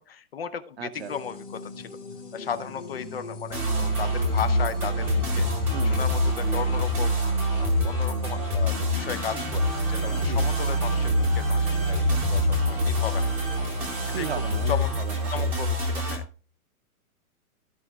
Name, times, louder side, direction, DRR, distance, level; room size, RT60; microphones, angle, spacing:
voice 1, 0.1-2.0 2.3-5.5 5.8-7.2 7.6-13.3 14.2-14.3 14.7-14.9 15.3-16.2, left 7 dB, 45° left, 0.7 m, -35 dB
voice 2, 0.8-1.1 5.7-6.0 10.1-10.5 14.1-15.5, right 8 dB, 45° right, 0.7 m, -36 dB
sound 1, 0.9-15.0, left 3 dB, 10° left, 1.3 m, -40 dB
sound 2, 3.5-16.2, equal, 5° right, 0.9 m, -25 dB
13.5 x 5.0 x 3.4 m
hypercardioid pair, 180°, 43 cm